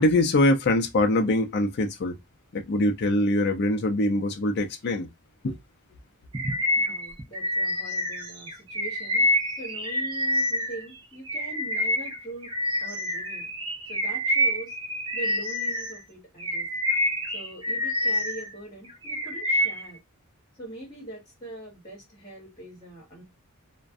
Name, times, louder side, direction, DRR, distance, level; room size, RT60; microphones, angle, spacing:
voice 1, 0.0-2.2 2.5-5.1 5.4-5.6, left 1 dB, 50° left, 0.4 m, -23 dB
Bird vocalization bird call bird song, 6.3-10.9 11.3-16.0 16.4-18.5 18.8-19.9, equal, 20° right, 0.5 m, -27 dB
voice 2, 6.8-9.3 9.6-12.5 12.8-13.5 13.9-14.8 15.1-16.7 17.3-20.0 20.6-23.2, right 1 dB, 20° left, 1.2 m, -42 dB
2.4 x 2.1 x 2.5 m
head